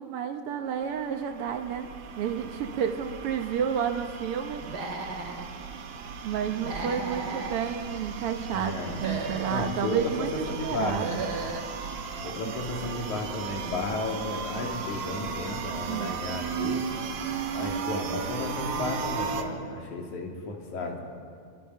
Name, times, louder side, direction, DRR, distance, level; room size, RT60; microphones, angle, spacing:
voice 1, 0.0-1.9 2.2-4.6 6.2-11.3 12.5-12.6 15.9-16.2, right 8 dB, 80° right, 5 dB, 1.2 m, -31 dB
sound 1, 0.7-19.4, right 6 dB, 65° right, 2.8 m, -36 dB
Human voice / Animal, 4.6-5.4 6.6-7.6 8.8-9.7 10.8-11.7, right 3 dB, 35° right, 2.3 m, -35 dB
voice 2, 8.5-9.0 9.5-10.1 10.5-11.1 12.2-16.9 17.5-21.0, left 3 dB, 60° left, 0 dB, 3.9 m, -33 dB
26.5 x 24.0 x 5.6 m, 2.2 s
omnidirectional pair, 4.0 m